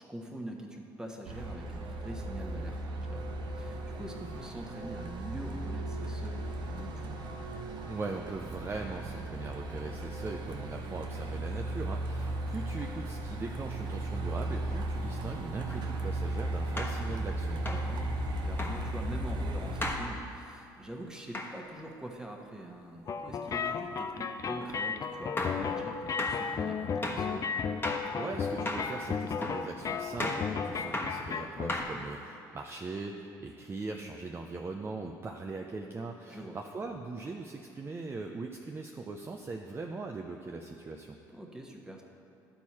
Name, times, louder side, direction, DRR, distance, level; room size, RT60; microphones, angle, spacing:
voice 1, 0.0-7.2 17.6-27.5 31.8-32.0 36.3-36.6 41.3-42.0, right 1 dB, 5° right, 1 dB, 1.2 m, -44 dB
Truck, 1.3-19.9, right 2 dB, 55° right, 0.8 m, -36 dB
voice 2, 7.9-17.6 28.1-41.2, right 3 dB, 25° right, 2 dB, 0.5 m, -40 dB
sound 1, 15.7-15.8 16.8-17.0 17.7-17.9 18.6-18.8 19.8-20.1 21.3-21.5 24.6-24.8 25.4-25.6 26.2-26.4 27.0-27.3 27.8-28.1 28.7-28.9 29.4-29.7 30.2-30.5 30.9-31.2 31.7-32.2, left 1 dB, 20° left, 1.2 m, -35 dB
sound 2, 23.1-31.8, left 6 dB, 40° left, 0.5 m, -34 dB
11.5 x 4.5 x 4.3 m, 2.7 s
supercardioid pair, 75°, 9 cm